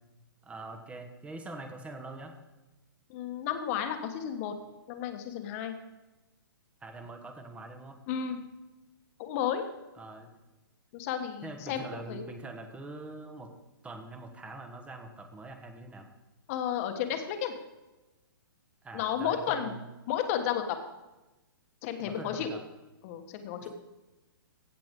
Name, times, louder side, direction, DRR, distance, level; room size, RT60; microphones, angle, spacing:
voice 1, 0.4-2.4 6.8-8.0 9.9-10.3 11.4-13.5 13.8-16.1 18.8-19.9 22.0-22.6 23.6-23.7, right 2 dB, 10° right, 5 dB, 1.2 m, -44 dB
voice 2, 3.1-4.5 4.9-5.7 8.1-8.4 9.2-9.6 10.9-12.3 16.5-17.5 18.9-19.7 20.1-20.8 21.8-22.6 23.0-23.7, left 9 dB, 40° left, 7 dB, 1.4 m, -32 dB
15.5 x 7.6 x 3.7 m, 1.1 s
hypercardioid pair, 135°, 12 cm